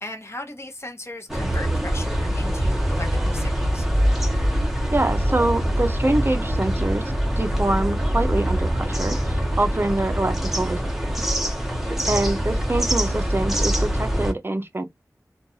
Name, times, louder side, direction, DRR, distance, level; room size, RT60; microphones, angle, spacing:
voice 1, 0.0-3.9 9.9-10.0 11.8-12.2, left 2 dB, 45° left, 0.9 m, -38 dB
sound 1, 1.3-14.3, equal, 5° right, 0.9 m, -24 dB
voice 2, 4.9-7.0 7.4-11.1 12.1-14.8, right 2 dB, 35° right, 0.5 m, -25 dB
2.5 x 2.3 x 2.7 m
wide cardioid pair, 50°, 6 cm